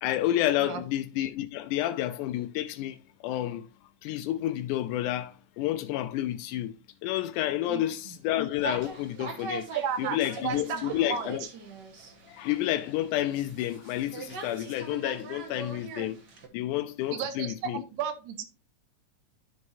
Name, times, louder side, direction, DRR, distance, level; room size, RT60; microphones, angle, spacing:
voice 1, 0.0-3.7 4.0-6.7 7.0-9.7 10.0-11.5 12.3-16.2 16.5-17.8, left 13 dB, 90° left, 2.1 m, -30 dB
sound 1, 8.6-16.5, right 4 dB, 45° right, 1.5 m, -41 dB
voice 2, 9.7-10.8 11.1-11.3 17.1-18.5, right 7 dB, 75° right, 2.3 m, -33 dB
12.5 x 4.8 x 2.7 m
omnidirectional pair, 3.5 m